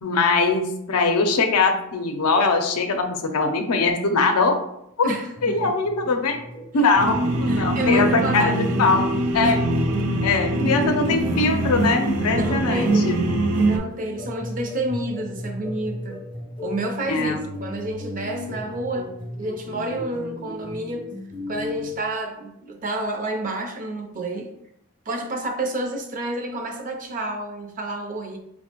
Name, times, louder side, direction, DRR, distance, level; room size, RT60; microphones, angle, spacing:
voice 1, 0.0-4.6 5.0-5.1 5.4-6.4 6.7-9.1 9.3-9.6 10.2-13.2 17.1-17.4, left 3 dB, 85° left, 5 dB, 0.5 m, -21 dB
voice 2, 5.0-5.7 7.5-9.0 9.4-9.6 12.3-13.2 13.6-16.2 16.6-19.1 19.4-21.0 21.5-24.5 25.1-28.4, right 1 dB, 40° right, 3 dB, 0.5 m, -29 dB
sound 1, 5.4-21.9, left 2 dB, 20° left, 0.4 m, -37 dB
sound 2, 7.0-13.8, right 1 dB, 85° right, 0.5 m, -23 dB
4.8 x 2.1 x 2.9 m, 0.78 s
head